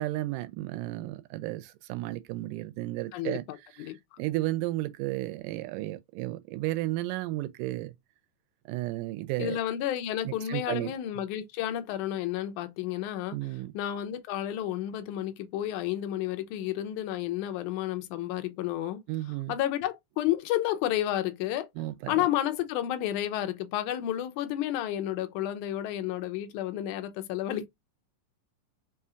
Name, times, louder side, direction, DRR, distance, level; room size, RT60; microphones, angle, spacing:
voice 1, 0.0-7.9 8.7-9.6 10.2-10.9 13.3-13.7 19.1-19.6 21.8-22.3, right 17 dB, 80° right, 2.0 m, -33 dB
voice 2, 3.1-4.2 9.4-13.4 13.7-19.0 19.5-21.7 22.1-27.7, left 12 dB, 75° left, 1.9 m, -31 dB
5.5 x 2.9 x 2.4 m
omnidirectional pair, 4.1 m